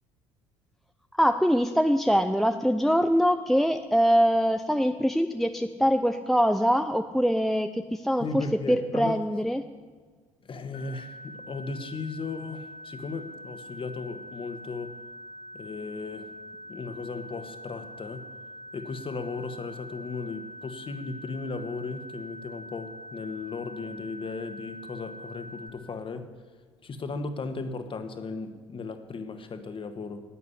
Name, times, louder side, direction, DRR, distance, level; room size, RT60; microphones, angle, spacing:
voice 1, 1.2-9.6, equal, ahead, 8 dB, 0.6 m, -23 dB
voice 2, 8.2-9.2 10.4-15.0 15.5-16.4 16.7-18.3 18.7-26.2 26.8-30.2, left 4 dB, 35° left, 8 dB, 1.6 m, -36 dB
sound 1, 10.7-25.7, left 1 dB, 55° left, 1.3 m, -44 dB
11.5 x 9.5 x 9.9 m, 1.5 s
figure-of-eight pair, 60°, 16 cm